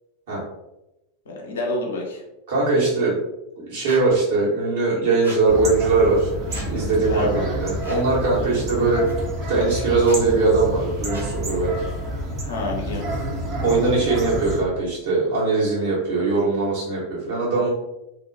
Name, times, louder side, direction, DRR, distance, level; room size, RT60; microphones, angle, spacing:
voice 1, 1.3-2.2 7.1-7.5 8.5-8.7 12.5-13.1, left 2 dB, 65° left, 0 dB, 0.6 m, -29 dB
voice 2, 2.5-3.1 3.6-11.7 13.6-17.7, right 3 dB, 60° right, -6 dB, 1.2 m, -21 dB
Squeak, 3.9-4.0 5.2-5.4 6.5-6.7 7.8-8.1 9.1-9.2 10.0-10.2 11.1-11.3, equal, 85° right, 0.8 m, -38 dB
sound 1, 5.5-14.6, right 1 dB, 35° right, 0.6 m, -29 dB
2.5 x 2.1 x 2.7 m, 0.92 s
figure-of-eight pair, 85°, 0 cm